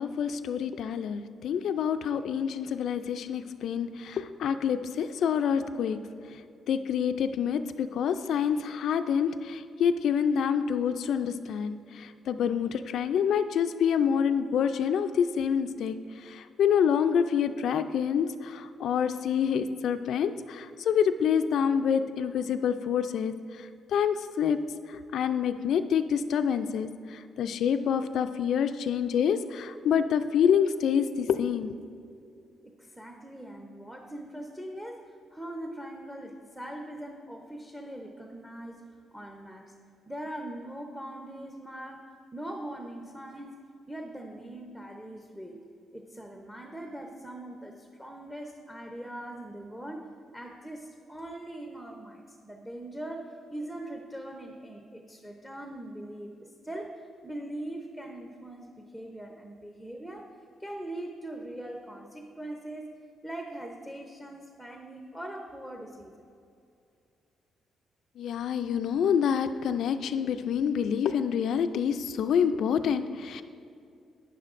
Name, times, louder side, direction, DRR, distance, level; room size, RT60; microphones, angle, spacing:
voice 1, 0.0-6.0 6.7-11.8 12.3-15.9 16.3-23.3 23.9-24.6 25.1-26.9 27.4-31.7 68.2-73.4, left 7 dB, 70° left, 9 dB, 0.3 m, -27 dB
voice 2, 32.6-38.8 39.1-39.6 40.1-42.1 42.3-43.5 43.9-45.6 45.9-60.3 60.6-62.9 63.2-66.2, right 1 dB, 5° right, 2 dB, 0.7 m, -41 dB
11.0 x 9.5 x 2.5 m, 2.5 s
cardioid pair, 90°, 0 cm